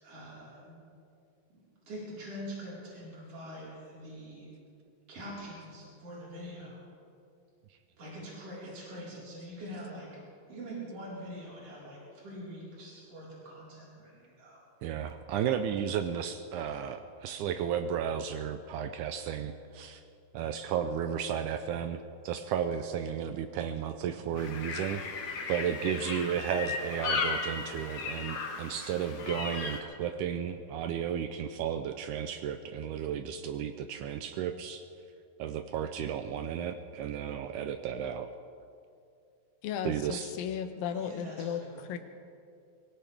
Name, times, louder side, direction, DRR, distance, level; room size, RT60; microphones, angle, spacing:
voice 1, 0.0-0.7 1.9-4.5 5.1-6.8 8.0-10.1 10.5-14.6 40.9-41.9, equal, 40° right, -7 dB, 5.3 m, -44 dB
voice 2, 14.8-20.0 20.3-22.0 22.2-25.1 25.5-34.8 35.4-38.3 39.8-40.3, right 8 dB, 85° right, 8 dB, 1.8 m, -33 dB
sound 1, 24.4-29.8, left 4 dB, 55° left, 1.9 m, -36 dB
voice 3, 39.6-41.6 41.9-42.0, left 8 dB, 80° left, 8 dB, 2.6 m, -35 dB
23.5 x 17.0 x 3.5 m, 2.4 s
omnidirectional pair, 4.2 m